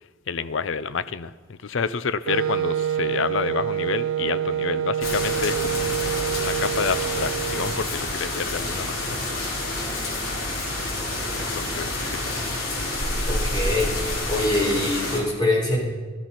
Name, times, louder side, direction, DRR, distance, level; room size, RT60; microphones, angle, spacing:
voice 1, 0.3-9.2 11.4-12.0, left 5 dB, 65° left, 15 dB, 0.5 m, -29 dB
Wind instrument woodwind instrument, 2.3-7.9, right 9 dB, 70° right, 0.3 m, -27 dB
sound 1, 5.0-15.2, left 2 dB, 80° left, 3.5 m, -28 dB
voice 2, 13.2-13.9 14.3-15.8, left 2 dB, 20° left, -3 dB, 4.4 m, -23 dB
14.5 x 13.0 x 5.8 m, 1.4 s
head